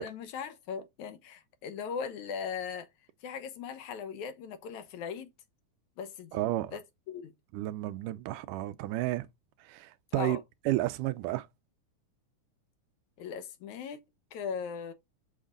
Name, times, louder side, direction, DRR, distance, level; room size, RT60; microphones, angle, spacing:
voice 1, 0.0-2.9 3.2-5.3 6.0-6.4 6.7-6.8 7.1-7.3 10.1-10.4 13.2-14.0 14.3-14.9, left 6 dB, 70° left, 2.1 m, -38 dB
voice 2, 6.3-6.8 7.5-9.3 9.6-10.4 10.7-11.5, right 16 dB, 80° right, 2.1 m, -32 dB
6.4 x 6.4 x 3.8 m
omnidirectional pair, 3.8 m